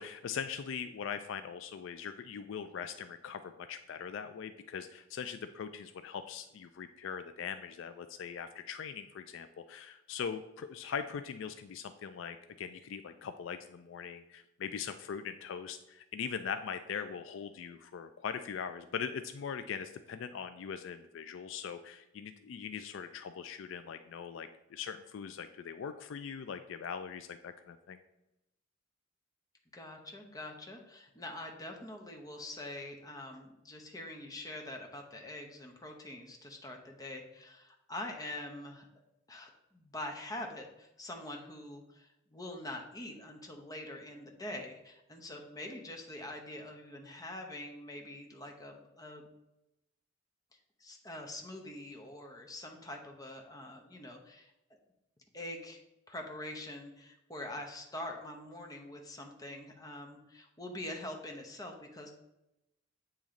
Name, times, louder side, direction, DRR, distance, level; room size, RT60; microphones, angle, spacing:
voice 1, 0.0-28.0, left 7 dB, 65° left, 9 dB, 0.3 m, -41 dB
voice 2, 29.7-38.9 39.3-49.2 50.8-54.5 55.3-55.8 56.1-62.1, left 1 dB, 20° left, 2 dB, 0.8 m, -44 dB
8.4 x 3.1 x 3.7 m, 0.90 s
head